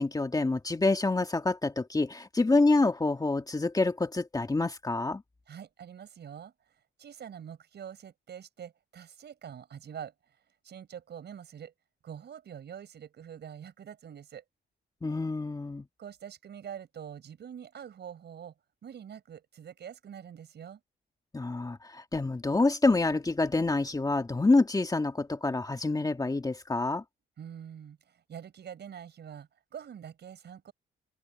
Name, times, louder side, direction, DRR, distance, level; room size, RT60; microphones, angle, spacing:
voice 1, 0.0-5.2 15.0-15.9 21.3-27.0, left 3 dB, 20° left, 2.2 m, -27 dB
voice 2, 5.5-6.7 7.0-10.4 10.6-11.7 12.0-14.4 16.0-18.5 18.8-20.8 27.4-30.7, right 8 dB, 60° right, 5.6 m, -45 dB
open air
cardioid pair, 90°, 20 cm